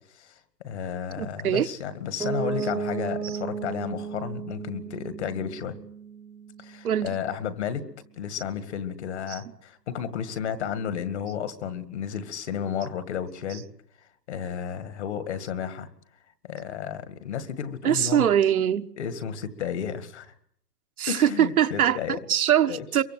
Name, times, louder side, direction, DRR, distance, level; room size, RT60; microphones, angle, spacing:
voice 1, 0.1-5.8 6.6-7.9 8.2-13.6 14.3-15.9 16.4-18.3 19.0-20.3 21.1-22.2 22.6-22.9, left 8 dB, 45° left, 2.1 m, -32 dB
voice 2, 1.2-1.7 6.8-7.1 9.3-9.4 17.8-18.9 21.0-23.0, right 10 dB, 60° right, 1.4 m, -23 dB
Piano, 2.2-7.9, right 6 dB, 5° right, 1.1 m, -35 dB
23.5 x 23.5 x 7.8 m
hypercardioid pair, 165°, 48 cm